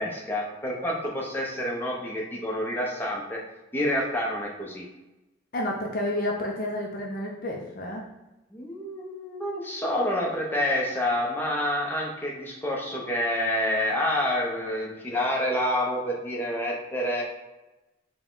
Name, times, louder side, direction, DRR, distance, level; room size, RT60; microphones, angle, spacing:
voice 1, 0.0-3.4 3.7-4.8 8.5-17.2, left 1 dB, 10° left, -3 dB, 0.7 m, -28 dB
voice 2, 5.5-8.1, left 1 dB, 45° left, -1 dB, 0.5 m, -30 dB
4.2 x 2.2 x 3.7 m, 1.0 s
head